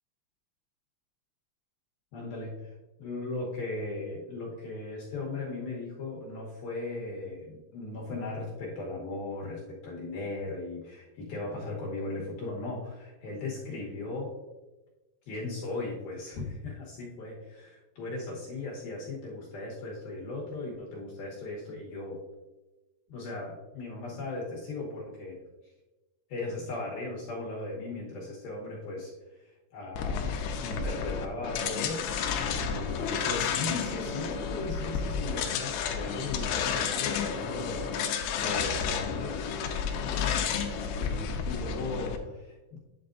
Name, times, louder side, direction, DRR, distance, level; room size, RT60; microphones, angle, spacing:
voice 1, 2.1-2.7 3.0-14.4 15.3-22.2 23.1-25.4 26.3-39.4 40.7-42.8, left 2 dB, 70° left, -3 dB, 2.6 m, -37 dB
sound 1, 29.9-42.2, left 6 dB, 85° left, 2.8 m, -31 dB
8.7 x 7.8 x 2.5 m, 1.1 s
omnidirectional pair, 5.3 m